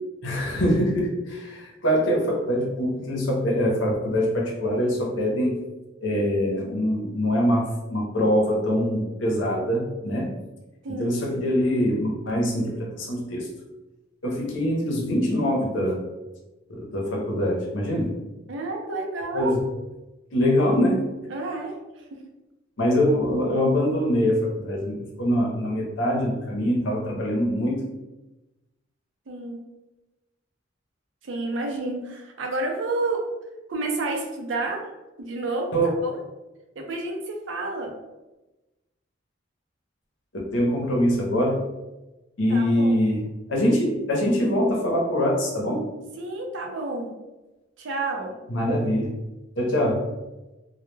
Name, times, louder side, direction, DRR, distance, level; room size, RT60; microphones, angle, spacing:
voice 1, 0.2-5.6 6.0-10.3 10.9-13.5 14.2-16.0 16.7-18.2 19.3-19.6 20.3-21.1 22.8-27.9 35.7-35.9 40.5-41.7 42.4-43.2 43.5-45.8 48.5-49.1 49.6-50.1, equal, 75° left, -1 dB, 0.7 m, -23 dB
voice 2, 10.8-11.2 18.5-19.5 21.3-21.7 22.1-22.2 29.3-29.6 31.2-33.2 33.7-34.8 35.2-36.2 36.8-37.9 42.5-43.0 46.2-47.1 47.8-48.4, right 2 dB, 80° right, 1 dB, 0.5 m, -30 dB
2.2 x 2.1 x 3.1 m, 1.1 s
head